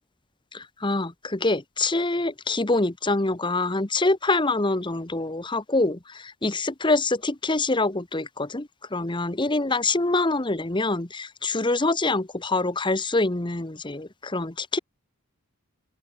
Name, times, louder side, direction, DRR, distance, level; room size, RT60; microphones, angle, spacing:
voice 1, 0.5-14.8, left 2 dB, 20° left, 1.1 m, -25 dB
open air
head